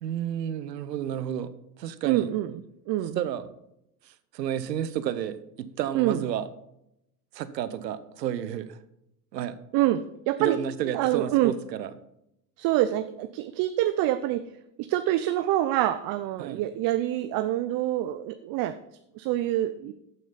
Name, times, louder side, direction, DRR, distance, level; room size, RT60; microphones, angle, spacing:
voice 1, 0.0-2.3 3.1-3.4 4.0-6.5 7.3-8.8 9.3-9.6 10.4-11.9 16.4-16.6, right 10 dB, 85° right, 14 dB, 0.9 m, -31 dB
voice 2, 2.0-2.5 2.9-3.2 5.9-6.2 9.7-10.6 10.9-11.5 12.6-14.4 14.8-18.7 19.2-19.9, right 14 dB, 45° right, 11 dB, 0.6 m, -26 dB
13.5 x 6.1 x 4.0 m, 0.83 s
hypercardioid pair, 80°, 49 cm